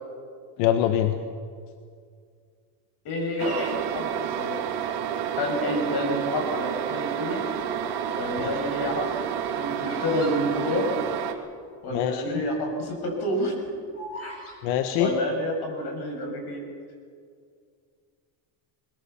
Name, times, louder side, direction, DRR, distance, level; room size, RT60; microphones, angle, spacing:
voice 1, 0.6-1.1 8.4-8.5 11.9-12.4 14.6-15.1, left 11 dB, 80° left, 7 dB, 1.5 m, -24 dB
voice 2, 3.0-4.6 5.4-7.4 8.1-9.2 9.6-10.9 11.8-13.8 15.0-16.7, left 1 dB, 50° left, 2 dB, 7.6 m, -28 dB
Bird vocalization bird call bird song, 3.3-4.8 5.5-5.9 6.7-7.6 7.9-11.4 11.6-11.7 11.9-12.3 12.7-14.6, equal, 30° left, 7.4 m, -42 dB
sound 1, 3.4-11.3, right 9 dB, 60° right, 2.5 m, -30 dB
22.5 x 20.5 x 7.1 m, 2.2 s
supercardioid pair, 110°, 47 cm